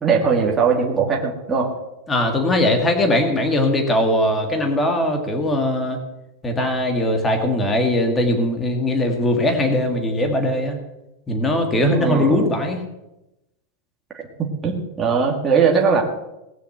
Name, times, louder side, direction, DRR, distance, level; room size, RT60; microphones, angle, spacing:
voice 1, 0.0-1.7 11.9-12.5 14.6-16.0, right 5 dB, 15° right, -1 dB, 2.1 m, -19 dB
voice 2, 2.1-6.0 6.4-10.8 11.3-12.8, left 1 dB, 10° left, 4 dB, 2.0 m, -20 dB
19.0 x 6.9 x 7.9 m, 0.94 s
supercardioid pair, 170°, 0 cm